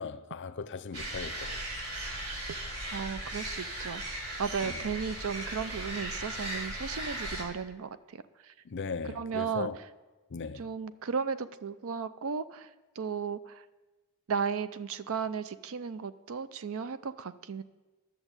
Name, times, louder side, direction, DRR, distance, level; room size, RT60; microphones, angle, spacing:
voice 1, 0.0-1.6 4.6-4.8 8.6-9.8 10.3-10.7, left 5 dB, 55° left, 0.5 m, -38 dB
sound 1, 0.9-7.4, right 1 dB, 90° right, 2.7 m, -37 dB
voice 2, 2.5-8.5 9.0-9.7 10.5-12.7 13.0-13.6 14.3-17.6, right 6 dB, 65° right, 0.5 m, -35 dB
11.0 x 7.2 x 7.9 m
head